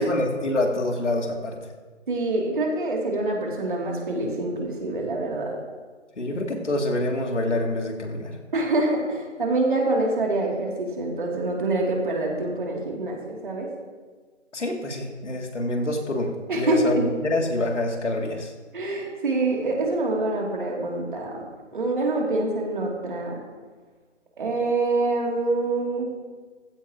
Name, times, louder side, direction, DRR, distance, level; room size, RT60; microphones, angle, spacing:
voice 1, 0.0-1.6 6.2-8.4 14.5-18.5, left 1 dB, 70° left, 1 dB, 2.8 m, -26 dB
voice 2, 2.1-5.5 8.5-13.7 16.5-17.0 18.7-21.4 21.7-23.4 24.4-26.1, right 2 dB, 45° right, -1 dB, 2.9 m, -25 dB
16.0 x 15.5 x 3.0 m, 1.4 s
figure-of-eight pair, 160°, 36 cm